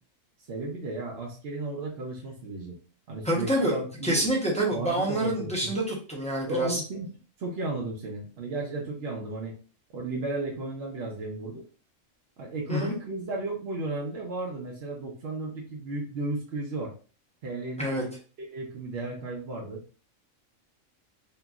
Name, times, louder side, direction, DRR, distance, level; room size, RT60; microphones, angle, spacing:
voice 1, 0.5-2.8 3.1-4.2 4.7-5.8 6.5-7.1 7.4-9.6 9.9-11.6 12.4-16.9 17.4-19.8, right 2 dB, 60° right, -1 dB, 0.8 m, -34 dB
voice 2, 3.2-3.7 4.0-6.8 12.7-13.0 17.8-18.0, right 1 dB, 10° left, -3 dB, 0.5 m, -27 dB
2.9 x 2.6 x 2.3 m, 0.37 s
omnidirectional pair, 1.4 m